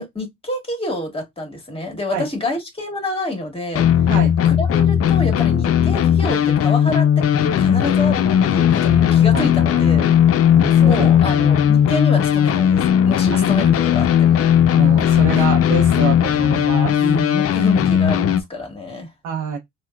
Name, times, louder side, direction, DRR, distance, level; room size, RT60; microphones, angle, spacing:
voice 1, 0.0-3.9 4.4-7.1 7.6-10.0 10.8-14.4 15.3-15.4 17.0-19.1, left 1 dB, 20° left, 1.6 m, -27 dB
sound 1, 3.8-18.4, left 9 dB, 50° left, 0.5 m, -16 dB
voice 2, 9.3-10.1 10.5-11.1 11.4-11.5 13.3-13.5 14.8-17.0 19.2-19.6, right 6 dB, 90° right, 0.7 m, -26 dB
4.5 x 2.2 x 2.3 m
cardioid pair, 90°, 30 cm